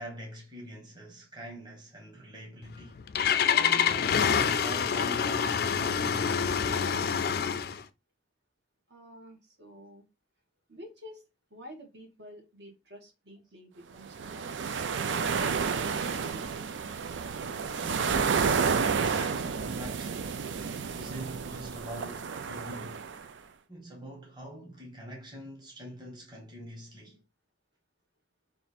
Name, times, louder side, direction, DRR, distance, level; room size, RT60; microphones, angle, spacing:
voice 1, 0.0-3.0 3.5-7.1 17.4-18.5 18.9-23.0 23.7-27.2, right 1 dB, 25° right, 1.1 m, -44 dB
Engine starting, 2.6-7.8, left 7 dB, 55° left, 0.4 m, -26 dB
voice 2, 8.9-10.1 10.7-11.2 11.5-16.4, equal, 70° right, 1.4 m, -49 dB
sound 1, 14.1-23.3, right 5 dB, 85° right, 0.4 m, -31 dB
3.4 x 2.5 x 4.1 m
head